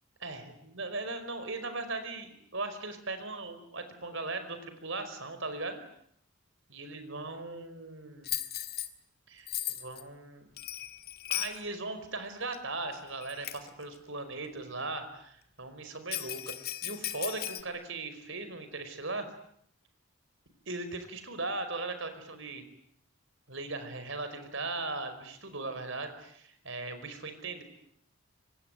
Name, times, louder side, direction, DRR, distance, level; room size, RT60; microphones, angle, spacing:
voice 1, 0.2-5.8 6.7-8.3 9.3-10.5 11.3-19.3 20.6-22.6 23.5-27.6, right 3 dB, 55° right, 9 dB, 5.1 m, -38 dB
Bell, 8.2-8.9 9.5-10.0 10.6-11.6 12.5-12.6 13.2-13.7 16.1-17.6, left 12 dB, 45° left, 1.9 m, -36 dB
26.0 x 24.0 x 9.4 m, 0.70 s
head